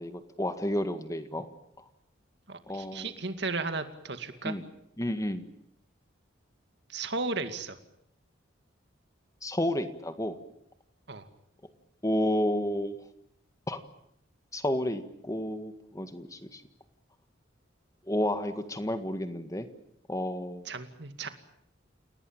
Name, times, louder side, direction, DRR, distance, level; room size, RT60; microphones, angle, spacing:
voice 1, 0.0-1.5 1.8-1.9 2.7-3.1 4.4-4.6 5.0-5.5 9.4-10.4 12.0-13.0 13.7-13.8 14.5-16.6 18.1-19.7 20.1-20.7, left 1 dB, 15° left, 9 dB, 1.8 m, -31 dB
voice 2, 2.5-4.5 6.9-7.8 11.1-11.3 20.7-21.3, right 3 dB, 60° right, 8 dB, 2.3 m, -35 dB
29.0 x 18.0 x 9.0 m, 0.77 s
head